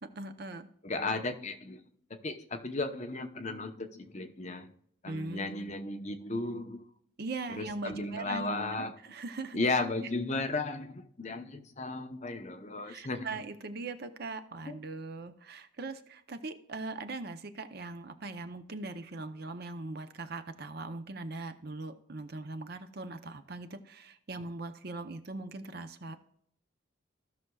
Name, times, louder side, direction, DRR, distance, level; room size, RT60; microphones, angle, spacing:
voice 1, 0.2-0.7 5.1-5.7 7.2-8.5 8.8-9.6 12.8-26.2, right 3 dB, 50° right, 0.7 m, -40 dB
voice 2, 0.8-1.8 2.2-4.7 5.0-6.8 7.6-8.9 9.5-13.3 14.7-14.8, left 2 dB, 35° left, 0.9 m, -35 dB
16.0 x 6.1 x 2.3 m
head